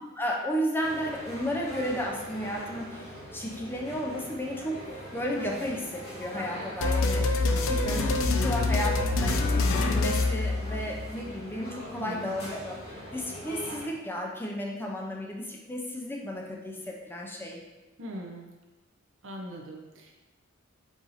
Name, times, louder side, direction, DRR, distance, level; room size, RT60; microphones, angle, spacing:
voice 1, 0.0-12.8 13.1-17.6, equal, 10° left, -1 dB, 0.5 m, -33 dB
sound 1, 0.8-13.8, equal, 55° left, 1.1 m, -42 dB
sound 2, 6.8-11.1, left 2 dB, 80° left, 0.4 m, -26 dB
voice 2, 11.9-12.4 18.0-18.5 19.2-20.1, equal, 70° right, 0 dB, 0.8 m, -41 dB
4.8 x 2.7 x 4.1 m, 1.1 s
head